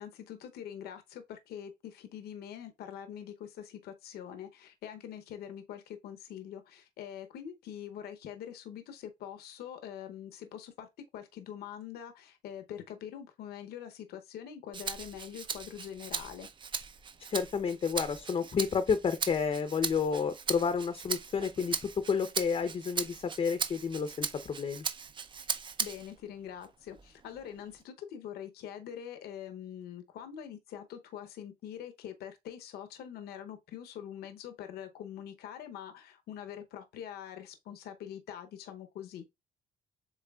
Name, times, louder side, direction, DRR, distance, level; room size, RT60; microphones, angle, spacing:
voice 1, 0.0-16.5 25.4-25.5 25.8-39.2, left 9 dB, 70° left, 0.8 m, -44 dB
Rattle (instrument), 14.7-26.2 26.6-27.8, right 6 dB, 30° right, 0.5 m, -38 dB
voice 2, 17.3-24.8, left 6 dB, 35° left, 0.6 m, -30 dB
7.2 x 3.2 x 2.3 m
cardioid pair, 110°, 17 cm